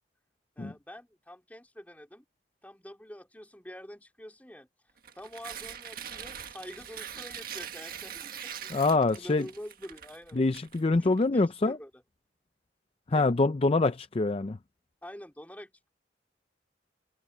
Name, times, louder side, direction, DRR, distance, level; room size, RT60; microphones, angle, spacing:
voice 1, 0.6-2.2 2.6-4.7 5.1-10.4 11.0-11.9 13.1-13.3 15.0-15.9, equal, 10° left, 4.2 m, -46 dB
Tearing, 5.0-11.2, right 8 dB, 55° right, 1.7 m, -42 dB
voice 2, 8.7-9.5 10.3-11.8 13.1-14.6, left 3 dB, 35° left, 0.5 m, -25 dB
head